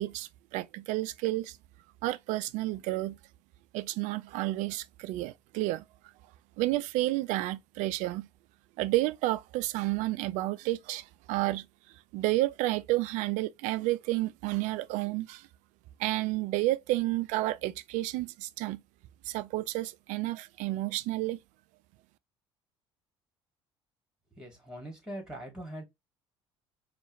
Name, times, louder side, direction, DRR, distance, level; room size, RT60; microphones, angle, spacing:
voice 1, 0.0-1.6 2.0-3.2 3.7-5.8 6.6-8.3 8.8-11.7 12.1-15.5 16.0-18.8 19.3-21.4, right 17 dB, 60° right, 0.4 m, -31 dB
voice 2, 24.3-25.8, right 1 dB, 5° right, 2.3 m, -42 dB
4.4 x 2.5 x 3.1 m
hypercardioid pair, 60°, 14 cm